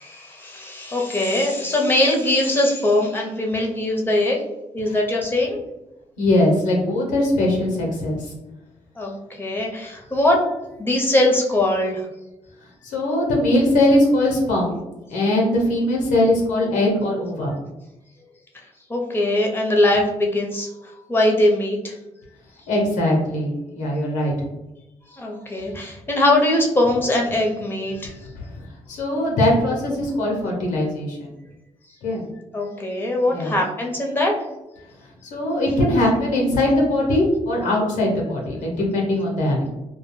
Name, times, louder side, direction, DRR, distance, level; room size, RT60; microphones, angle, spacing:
voice 1, 0.0-4.4 4.7-5.6 9.0-10.4 10.8-12.1 18.9-20.7 21.1-21.9 25.1-28.1 32.5-34.3, left 1 dB, 15° left, 0 dB, 0.7 m, -21 dB
voice 2, 6.2-8.3 12.8-14.7 15.1-17.5 22.7-24.3 28.3-28.6 28.9-31.3 32.0-32.2 33.3-33.5 35.3-39.7, left 1 dB, 85° left, -2 dB, 0.7 m, -21 dB
2.3 x 2.2 x 3.1 m, 0.97 s
supercardioid pair, 50°, 13 cm